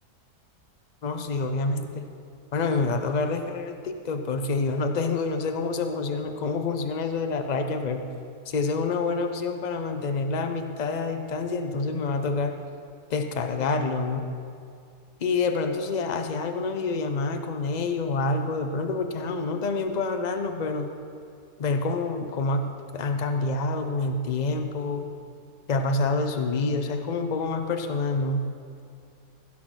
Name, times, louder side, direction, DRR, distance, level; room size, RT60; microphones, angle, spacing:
voice 1, 1.0-2.1 2.5-8.1 8.5-12.6 13.1-14.3 15.2-20.9 21.6-22.6 22.9-25.1 25.7-28.4, left 3 dB, 45° left, 6 dB, 0.5 m, -27 dB
15.5 x 5.8 x 6.2 m, 2.3 s
omnidirectional pair, 1.7 m